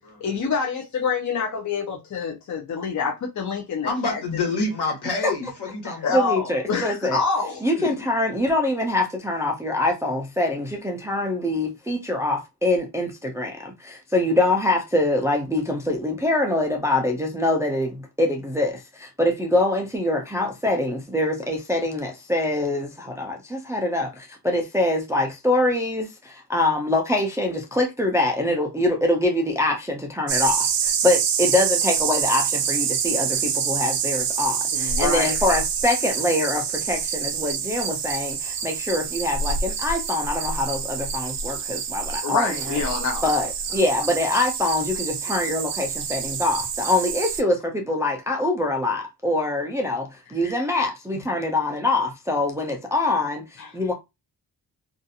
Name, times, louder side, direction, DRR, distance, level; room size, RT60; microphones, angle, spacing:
voice 1, 0.2-4.2 6.0-7.6 34.7-35.4 42.2-43.3 51.1-51.2 53.6-53.9, left 5 dB, 45° left, 0.5 m, -27 dB
voice 2, 3.8-6.2 7.7-8.0, left 3 dB, 70° left, 1.3 m, -28 dB
voice 3, 5.8-7.2 7.6-42.8 43.2-53.9, left 2 dB, 10° right, 0.3 m, -24 dB
sound 1, 30.3-47.4, right 7 dB, 85° right, 0.6 m, -26 dB
2.6 x 2.3 x 2.6 m
wide cardioid pair, 170°, 40 cm